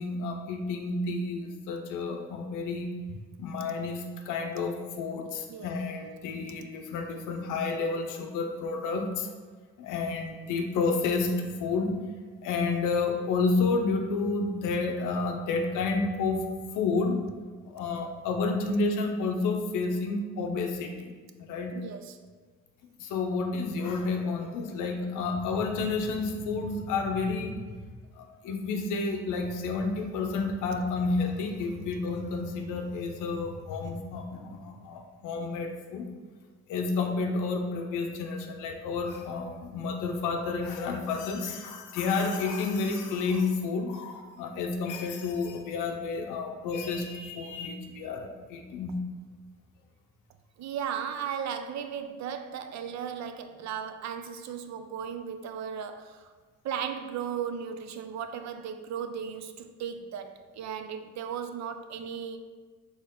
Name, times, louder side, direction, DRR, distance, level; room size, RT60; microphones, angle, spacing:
voice 1, 0.0-2.9 3.4-9.3 9.8-12.0 12.4-16.4 16.7-17.2 17.6-21.2 21.5-21.8 23.0-27.7 28.2-36.1 36.7-49.1, left 4 dB, 90° left, 4 dB, 0.7 m, -30 dB
voice 2, 21.7-22.2 50.6-56.3 56.6-62.4, right 7 dB, 65° right, 9 dB, 0.5 m, -36 dB
4.3 x 3.1 x 3.7 m, 1.4 s
cardioid pair, 90°, 30 cm